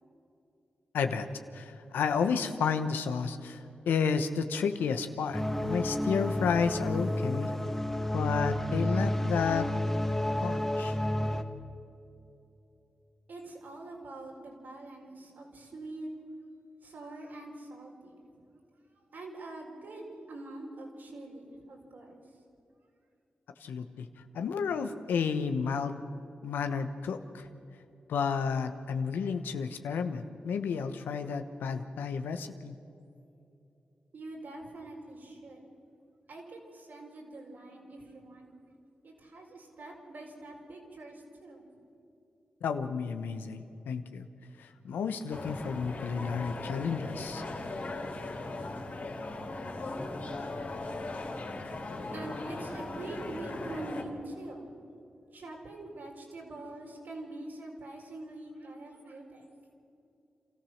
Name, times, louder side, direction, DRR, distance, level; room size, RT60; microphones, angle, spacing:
voice 1, 0.9-1.3 1.5-7.5 8.1-9.7 10.4-11.0 23.6-24.1 24.3-26.0 26.4-27.5 28.1-32.7 42.6-44.3 44.6-47.4, left 6 dB, 90° left, 8 dB, 1.1 m, -31 dB
sound 1, 5.3-11.4, left 1 dB, 10° left, 1.8 m, -30 dB
voice 2, 13.3-16.2 16.8-18.4 19.1-22.2 34.1-35.6 36.3-38.5 39.0-41.7 51.8-54.7 55.3-59.5, right 2 dB, 70° right, -1 dB, 4.7 m, -44 dB
sound 2, 45.3-54.0, left 2 dB, 65° left, 3.5 m, -38 dB
28.0 x 14.5 x 6.5 m, 2.8 s
supercardioid pair, 45°, 3 cm